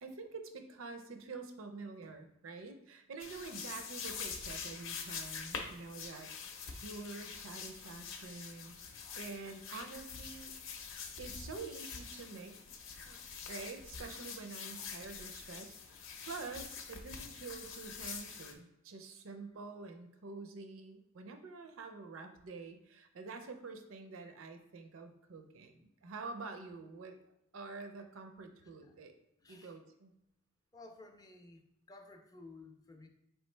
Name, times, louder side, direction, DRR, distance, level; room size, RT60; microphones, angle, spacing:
voice 1, 0.0-6.3 6.6-10.5 11.2-12.6 13.0-13.2 13.5-27.2 27.5-29.1 29.5-30.1, right 4 dB, 65° right, 6 dB, 0.5 m, -47 dB
sound 1, 3.2-18.5, left 6 dB, 65° left, 0.6 m, -45 dB
voice 2, 29.4-29.8 30.7-31.6 31.9-33.1, left 2 dB, 15° left, 5 dB, 0.4 m, -54 dB
4.8 x 3.0 x 3.2 m, 0.83 s
head